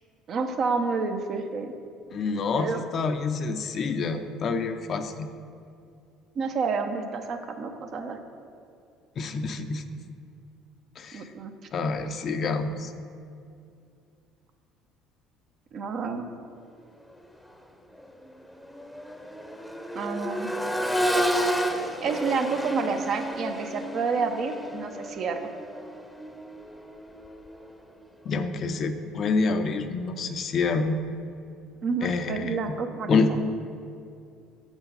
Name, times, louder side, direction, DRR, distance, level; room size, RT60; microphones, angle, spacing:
voice 1, 0.3-1.7 2.5-2.8 6.4-8.2 11.1-11.5 15.7-16.2 19.9-20.5 22.0-25.4 31.8-33.4, right 4 dB, 50° right, 5 dB, 0.7 m, -29 dB
voice 2, 2.1-5.3 9.2-9.9 11.0-11.2 11.7-12.9 28.3-31.0 32.0-32.8 33.1-33.4, left 4 dB, 50° left, 8 dB, 0.5 m, -27 dB
Accelerating revving vroom, 17.3-17.5 17.9-27.8 29.5-29.6, equal, ahead, 0.8 m, -31 dB
7.7 x 4.5 x 5.5 m, 2.4 s
hypercardioid pair, 65°, 0 cm